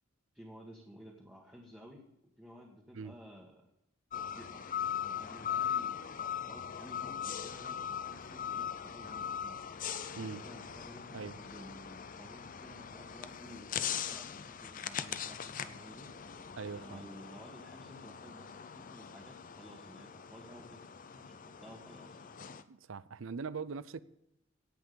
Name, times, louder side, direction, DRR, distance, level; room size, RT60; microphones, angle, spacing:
voice 1, 0.3-2.0 2.4-3.7 4.1-6.0 6.5-9.7 10.3-16.1 16.7-20.8 21.2-22.3, equal, 5° right, 1.6 m, -54 dB
sound 1, 4.1-22.6, left 8 dB, 40° left, 0.6 m, -40 dB
voice 2, 10.1-10.5 11.1-11.4 16.6-17.0 22.7-24.0, right 5 dB, 70° right, 0.5 m, -41 dB
17.5 x 5.9 x 6.9 m
head